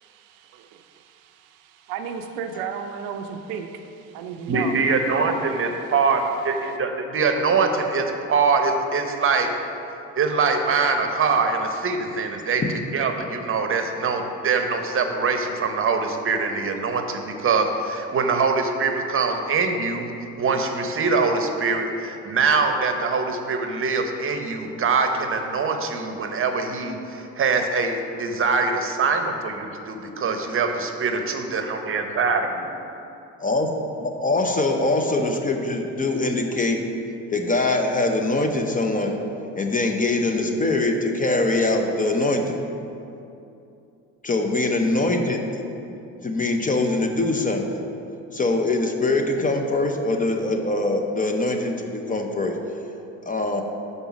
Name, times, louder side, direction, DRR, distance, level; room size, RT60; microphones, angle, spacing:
voice 1, 0.2-4.7, right 7 dB, 70° right, 6 dB, 0.5 m, -34 dB
voice 2, 4.5-9.5 10.2-12.6 12.9-20.1 20.4-32.7, right 4 dB, 35° right, 5 dB, 0.8 m, -23 dB
voice 3, 33.4-33.7 34.0-36.8 37.3-39.2 39.6-42.6 44.3-45.6 46.2-47.8 48.3-52.6 53.2-53.6, left 2 dB, 20° left, 3 dB, 0.6 m, -23 dB
5.4 x 4.0 x 5.9 m, 2.7 s
hypercardioid pair, 65°, 37 cm